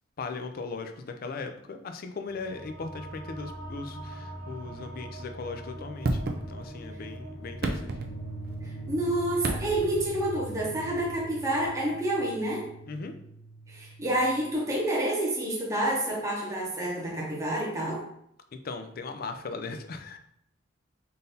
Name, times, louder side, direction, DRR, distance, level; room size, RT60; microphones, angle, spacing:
voice 1, 0.2-6.2 6.5-7.9 12.9-13.2 18.5-20.2, left 4 dB, 50° left, 7 dB, 0.4 m, -38 dB
sound 1, 2.2-13.2, equal, 20° left, 0.8 m, -43 dB
sound 2, 6.0-6.9 7.4-8.7 9.4-10.1 11.6-11.7, right 2 dB, 55° right, 0.5 m, -32 dB
sound 3, 7.9-14.5, right 3 dB, 75° left, 1.6 m, -44 dB
voice 2, 8.9-12.6 13.7-18.0, right 1 dB, 15° right, -4 dB, 0.9 m, -28 dB
3.8 x 2.6 x 3.9 m, 0.72 s
head